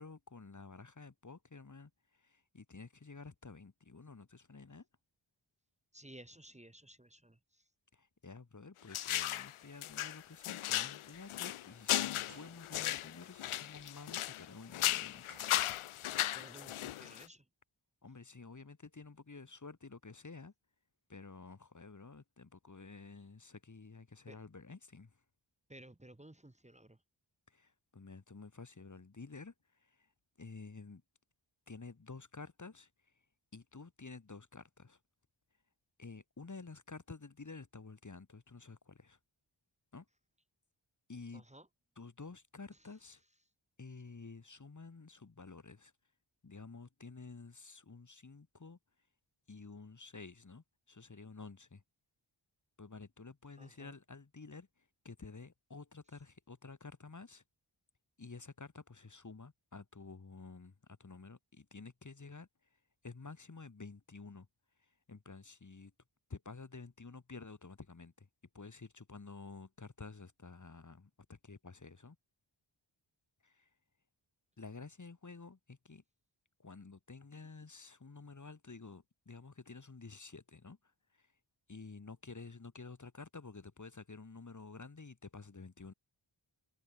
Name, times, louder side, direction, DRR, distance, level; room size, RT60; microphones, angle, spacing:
voice 1, 0.0-4.9 7.9-15.2 18.0-20.5 21.1-25.1 27.5-30.1 30.4-31.0 31.7-32.9 33.5-35.0 36.0-39.2 39.9-40.1 41.1-41.4 42.0-43.2 43.8-45.9 46.4-48.8 49.5-51.8 52.8-57.4 58.2-62.5 63.0-64.5 64.8-65.9 66.3-68.3 68.5-72.2 73.4-73.7 74.6-76.0 76.6-80.8 81.1-81.3 81.7-85.9, left 4 dB, 35° left, 2.1 m, -51 dB
voice 2, 5.9-7.4 16.3-17.4 24.3-24.4 25.7-27.0 41.3-41.7 53.6-53.9, right 1 dB, 15° right, 1.8 m, -55 dB
sound 1, 8.9-9.5 9.8-14.5 14.7-17.3, left 13 dB, 85° left, 0.6 m, -36 dB
sound 2, 12.2-13.0 14.5-14.6 15.2-16.2, right 5 dB, 80° right, 5.4 m, -63 dB
wide cardioid pair, 75°, 48 cm